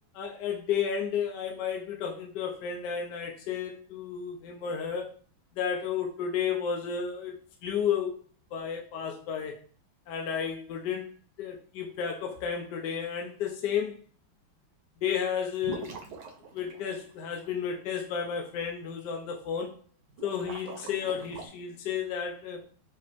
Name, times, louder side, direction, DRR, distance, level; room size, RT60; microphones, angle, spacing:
voice 1, 0.1-5.1 5.6-7.4 7.6-8.2 8.5-9.6 10.1-11.1 11.4-13.9 15.0-15.9 16.5-19.7 20.2-22.6, left 7 dB, 70° left, 2 dB, 1.1 m, -32 dB
sound 1, 15.6-17.5 20.1-21.5, right 4 dB, 85° right, 1.6 m, -43 dB
4.9 x 2.8 x 2.9 m, 0.42 s
omnidirectional pair, 2.2 m